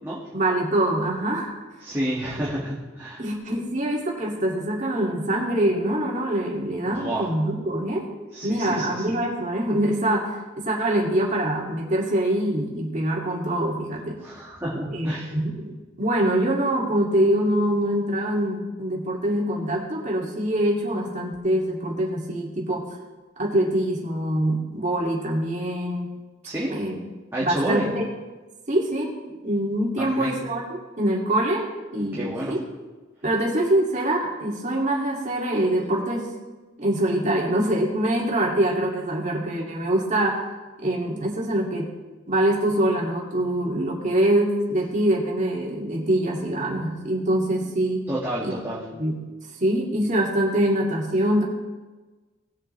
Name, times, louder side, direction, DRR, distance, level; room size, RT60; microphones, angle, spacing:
voice 1, 0.3-1.5 3.2-8.1 8.4-14.2 14.9-22.9 23.4-26.1 26.7-27.0 27.4-28.0 28.7-32.6 33.2-36.3 36.8-40.4 40.8-41.9 42.3-48.0 48.4-48.5 49.0-49.3 49.6-51.4, right 1 dB, 40° right, -2 dB, 2.5 m, -24 dB
voice 2, 1.8-3.2 6.9-7.3 8.3-9.1 14.2-15.3 26.4-26.7 27.3-27.9 30.0-30.4 32.1-32.6 48.1-48.8, right 1 dB, 15° right, -8 dB, 2.0 m, -29 dB
19.5 x 7.6 x 3.3 m, 1.2 s
head